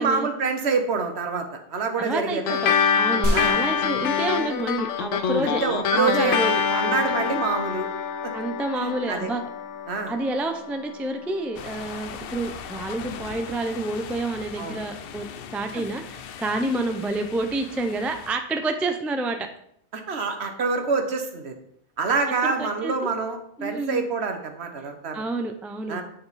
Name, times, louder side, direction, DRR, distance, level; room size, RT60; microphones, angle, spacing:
voice 1, 0.0-2.6 3.3-3.6 5.4-6.4 6.7-7.9 8.2-8.3 8.8-9.3 9.9-10.1 14.6-14.8 19.9-21.5 22.0-25.2 25.9-26.0, right 4 dB, 65° right, 6 dB, 1.2 m, -26 dB
voice 2, 2.0-5.6 5.9-7.0 8.3-9.4 10.1-19.5 22.4-22.9 23.6-24.1 25.1-26.0, right 2 dB, ahead, 5 dB, 0.4 m, -29 dB
sound 1, 2.5-11.3, left 7 dB, 85° left, 1.0 m, -26 dB
sound 2, 3.2-5.2 5.5-5.6, equal, 85° right, 1.7 m, -30 dB
sound 3, 11.5-18.3, left 8 dB, 60° left, 0.7 m, -39 dB
10.0 x 4.2 x 4.1 m, 0.69 s
omnidirectional pair, 1.2 m